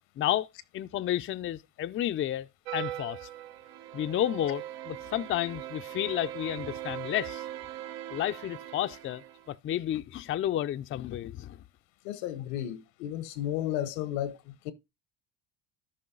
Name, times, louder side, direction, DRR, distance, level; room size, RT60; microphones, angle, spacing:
voice 1, 0.2-0.5 0.7-2.5 2.7-3.3 3.9-7.5 8.1-9.2 9.5-11.6, left 12 dB, 35° left, 0.5 m, -31 dB
sound 1, 2.6-9.6, right 13 dB, 80° right, 1.1 m, -40 dB
voice 2, 12.0-14.7, left 12 dB, 90° left, 1.2 m, -33 dB
13.0 x 5.4 x 3.8 m
cardioid pair, 115°, 39 cm